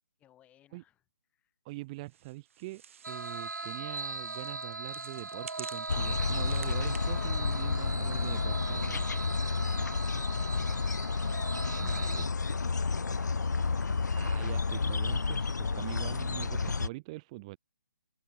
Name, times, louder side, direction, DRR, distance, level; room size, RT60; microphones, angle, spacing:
voice 1, 0.2-1.0 1.3-1.6 9.1-11.1, left 12 dB, 15° left, 5.6 m, -63 dB
voice 2, 1.6-9.1 11.8-12.3 14.2-17.6, right 21 dB, 20° right, 0.5 m, -43 dB
sound 1, 2.0-8.4, right 8 dB, 45° right, 2.5 m, -52 dB
sound 2, 3.0-12.3, right 3 dB, 85° right, 0.4 m, -40 dB
sound 3, 5.9-16.9, left 4 dB, 75° left, 0.6 m, -31 dB
figure-of-eight pair, 140°, 10 cm